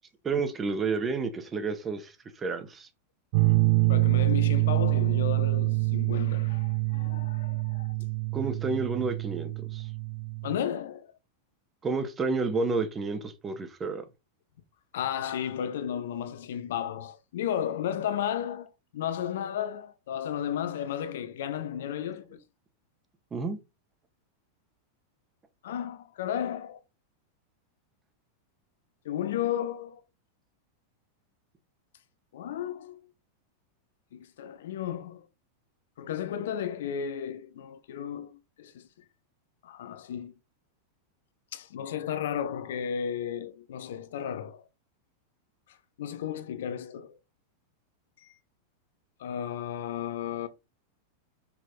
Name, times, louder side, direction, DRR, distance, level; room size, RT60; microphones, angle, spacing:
voice 1, 0.2-2.9 8.3-9.9 11.8-14.1 23.3-23.6, right 4 dB, 20° right, 1.7 m, -30 dB
voice 2, 3.3-7.9 10.4-11.1 14.9-22.4 25.6-26.8 29.0-30.0 32.3-33.0 34.1-35.2 36.0-38.9 39.6-40.3 41.5-44.7 46.0-47.2 48.2-48.3 49.2-50.5, left 9 dB, 60° left, 1.0 m, -34 dB
sound 1, 3.3-10.6, right 23 dB, 45° right, 0.4 m, -26 dB
6.3 x 6.0 x 4.0 m
figure-of-eight pair, 90°, 0 cm